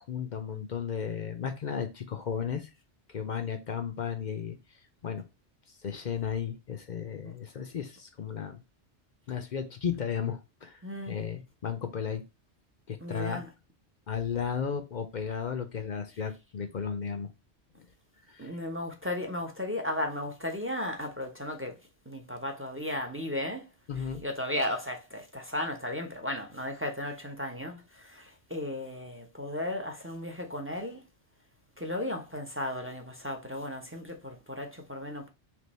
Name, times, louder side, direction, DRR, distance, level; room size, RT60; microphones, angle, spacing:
voice 1, 0.0-2.7 3.1-4.6 5.0-5.2 5.8-8.6 9.3-12.2 12.9-13.4 14.1-17.3 18.3-18.6 23.9-24.2, left 7 dB, 50° left, 0.6 m, -34 dB
voice 2, 10.8-11.2 13.0-13.5 18.4-21.8 22.1-23.7 24.0-31.0 31.8-35.3, left 1 dB, 15° right, 0.6 m, -35 dB
3.5 x 3.0 x 4.1 m
omnidirectional pair, 1.2 m